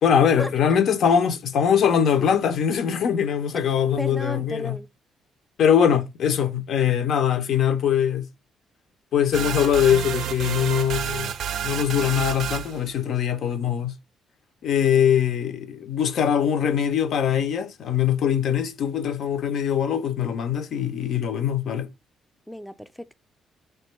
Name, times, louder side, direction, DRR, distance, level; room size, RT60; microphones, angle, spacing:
voice 1, 0.0-4.8 5.6-8.3 9.1-11.3 11.6-13.9 14.6-21.9, left 8 dB, 70° left, 0.4 m, -22 dB
voice 2, 4.0-4.9 22.5-23.2, equal, 5° left, 0.3 m, -33 dB
sound 1, 9.3-12.8, right 9 dB, 75° right, 0.4 m, -29 dB
3.4 x 2.2 x 2.9 m
cardioid pair, 90°, 0 cm